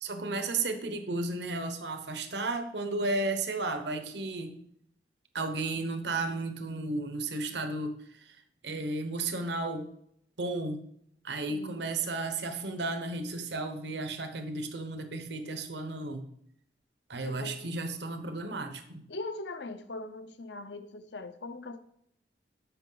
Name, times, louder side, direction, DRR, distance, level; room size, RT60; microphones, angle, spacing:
voice 1, 0.0-4.6 5.3-8.4 8.6-9.9 10.4-10.8 11.2-16.2 17.1-19.1, right 2 dB, 75° right, 1.0 m, -33 dB
voice 2, 11.5-11.9 17.2-17.6 19.1-21.8, left 2 dB, 75° left, 0.7 m, -40 dB
13.0 x 5.7 x 4.0 m
head